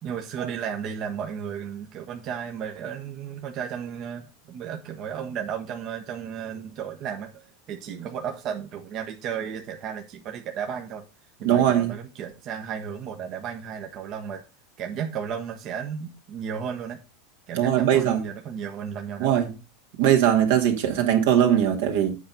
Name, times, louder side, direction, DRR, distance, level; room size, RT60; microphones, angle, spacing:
voice 1, 0.0-11.0 11.4-14.4 14.8-17.0 17.5-19.5, right 7 dB, 45° right, 1.1 m, -34 dB
voice 2, 11.4-11.9 17.6-18.2 19.2-19.5 20.0-22.2, right 10 dB, 75° right, 2.1 m, -20 dB
8.4 x 4.4 x 5.4 m
hypercardioid pair, 105°, 0 cm